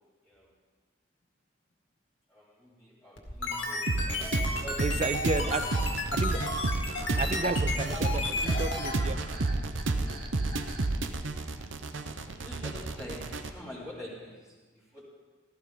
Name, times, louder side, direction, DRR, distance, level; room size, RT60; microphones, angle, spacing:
voice 1, 2.3-4.3 4.6-5.0 5.2-6.2 9.0-9.1 11.9-13.2 13.5-15.0, equal, ahead, -11 dB, 3.0 m, -46 dB
sound 1, 3.2-8.9, left 2 dB, 70° left, 2.1 m, -33 dB
sound 2, 3.9-13.5, right 2 dB, 75° right, 0.8 m, -31 dB
voice 2, 4.8-5.6 6.1-6.4 7.1-9.2, right 3 dB, 35° right, 11 dB, 0.4 m, -32 dB
sound 3, 6.8-12.0, right 2 dB, 50° right, 1.5 m, -49 dB
16.0 x 13.5 x 3.9 m, 1.3 s
head